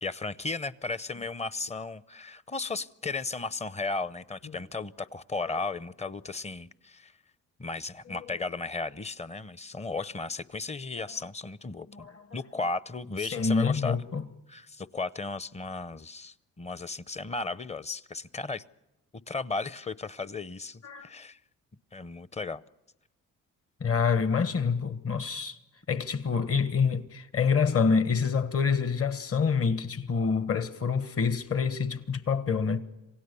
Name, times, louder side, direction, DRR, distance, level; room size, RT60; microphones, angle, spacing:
voice 1, 0.0-7.1 7.6-12.1 12.3-14.0 14.5-18.6 19.3-21.4 21.9-22.6, left 3 dB, 20° left, 0.7 m, -35 dB
voice 2, 13.2-14.3 20.8-21.1 23.8-25.6 25.9-32.8, left 5 dB, 50° left, 1.5 m, -27 dB
27.0 x 17.0 x 6.9 m
cardioid pair, 90°, 30 cm